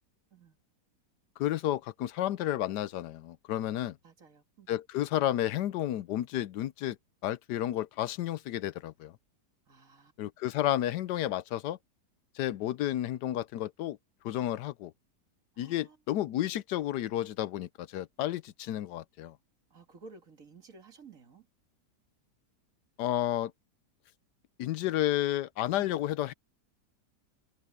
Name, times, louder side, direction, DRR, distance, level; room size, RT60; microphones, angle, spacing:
voice 1, 1.4-4.0 4.7-7.0 7.2-9.1 10.2-11.8 12.3-14.0 14.2-14.9 15.6-19.4 23.0-23.5 24.6-26.3, left 13 dB, 80° left, 1.2 m, -31 dB
voice 2, 4.0-4.7 9.7-10.1 15.5-16.0 19.7-21.5 25.7-26.0, right 4 dB, 50° right, 2.3 m, -54 dB
omnidirectional pair, 1.8 m